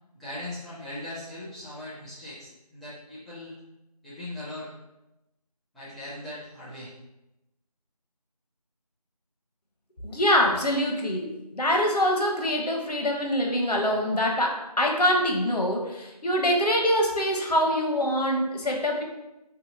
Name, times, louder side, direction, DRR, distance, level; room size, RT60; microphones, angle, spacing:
voice 1, 0.1-3.5 4.0-4.7 5.7-6.9, left 1 dB, ahead, -14 dB, 0.4 m, -39 dB
voice 2, 10.0-19.0, equal, 80° left, 1 dB, 0.7 m, -24 dB
2.7 x 2.7 x 2.6 m, 0.95 s
figure-of-eight pair, 180°, 20 cm